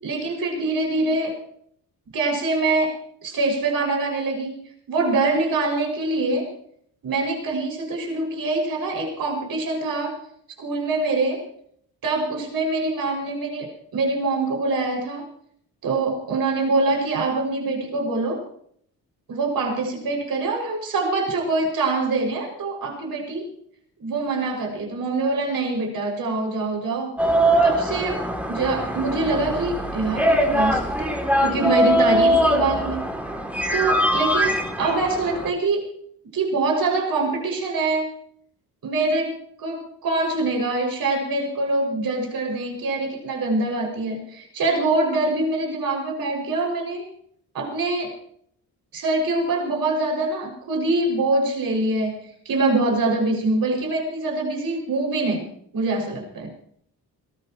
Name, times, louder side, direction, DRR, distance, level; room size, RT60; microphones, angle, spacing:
voice 1, 0.0-1.4 2.1-2.9 3.2-4.6 4.9-6.5 7.0-10.2 10.6-11.4 12.0-15.3 15.8-18.4 19.3-23.5 24.0-27.1 27.6-28.2 28.5-33.0 33.7-35.9 36.3-38.1 38.8-47.1 47.5-48.1 48.9-55.5 55.7-56.5, right 3 dB, 65° right, 1 dB, 6.2 m, -24 dB
sound 1, 27.2-35.5, equal, 5° right, 2.6 m, -22 dB
21.5 x 20.0 x 3.0 m, 0.65 s
wide cardioid pair, 140°, 37 cm